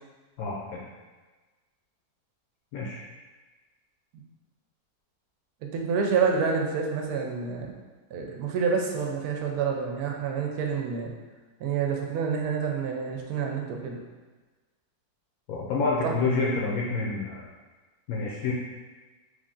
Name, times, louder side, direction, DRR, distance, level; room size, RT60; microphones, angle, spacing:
voice 1, 0.4-0.9 2.7-3.0 15.5-17.4 18.1-18.5, left 3 dB, 70° left, -4 dB, 1.0 m, -28 dB
voice 2, 5.7-7.7 8.1-11.1 11.6-14.0 16.0-16.1, right 5 dB, 75° right, 1 dB, 1.1 m, -28 dB
3.4 x 2.5 x 3.7 m, 1.3 s
omnidirectional pair, 1.7 m